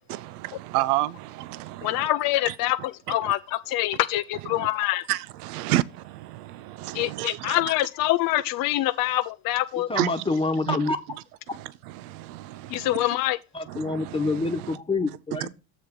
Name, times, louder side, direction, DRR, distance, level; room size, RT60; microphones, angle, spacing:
voice 1, 0.1-2.1 2.5-2.6 4.5-4.7 5.1-7.6 10.0-10.2 10.7-10.8 11.5-13.0 13.7-14.8 15.4-15.5, right 16 dB, 90° right, 0.5 m, -31 dB
voice 2, 1.8-5.1 6.9-9.9 12.7-13.4, left 16 dB, 50° left, 0.5 m, -25 dB
voice 3, 9.9-11.0 13.5-15.5, left 3 dB, 10° left, 1.1 m, -26 dB
7.2 x 3.7 x 6.2 m
supercardioid pair, 95°, 44 cm